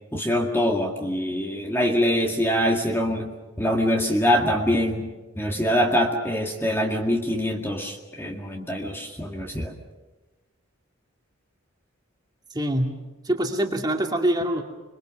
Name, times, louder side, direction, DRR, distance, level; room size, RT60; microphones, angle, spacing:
voice 1, 0.1-3.3 3.6-5.1 5.4-9.7, equal, 10° left, 1 dB, 2.0 m, -24 dB
voice 2, 12.5-13.0 13.2-14.6, right 1 dB, 20° right, 2 dB, 2.4 m, -24 dB
26.5 x 23.0 x 6.4 m, 1.2 s
head